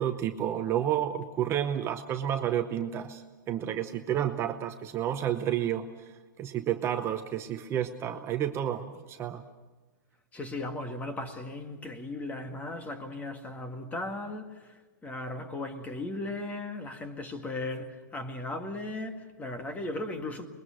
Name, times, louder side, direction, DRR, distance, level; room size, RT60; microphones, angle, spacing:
voice 1, 0.0-9.4, right 10 dB, 25° right, 0.9 m, -31 dB
voice 2, 10.3-20.5, left 2 dB, 15° left, 1.9 m, -37 dB
25.5 x 21.5 x 6.5 m
hypercardioid pair, 135°, 10 cm